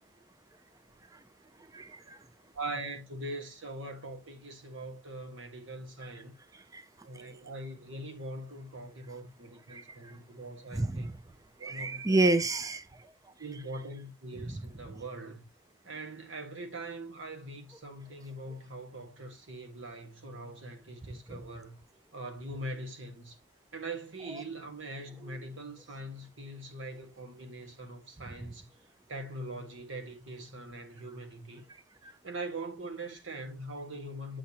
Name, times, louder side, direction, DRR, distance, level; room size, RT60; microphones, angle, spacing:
voice 1, 1.7-2.2 6.7-6.8 9.7-9.8 10.7-11.0 11.6-12.8, right 2 dB, 15° right, 0.4 m, -28 dB
voice 2, 2.5-6.3 7.0-11.1 11.6-12.2 13.4-15.4 15.8-21.8 22.1-23.4 23.7-28.7 29.1-31.6 32.2-34.4, right 1 dB, 75° right, 1.5 m, -42 dB
8.5 x 5.6 x 2.9 m
head